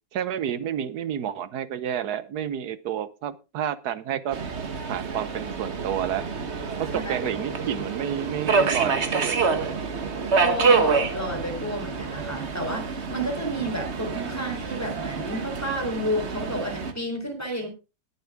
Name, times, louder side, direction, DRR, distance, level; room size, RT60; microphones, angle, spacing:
voice 1, 0.1-4.4 4.9-6.3 6.8-9.4, right 9 dB, 65° right, 15 dB, 1.3 m, -30 dB
Subway metro underground, 4.3-16.9, right 5 dB, 40° right, 1.5 m, -27 dB
voice 2, 10.4-17.7, equal, 10° left, 3 dB, 3.6 m, -31 dB
20.5 x 7.3 x 3.5 m, 0.29 s
omnidirectional pair, 1.9 m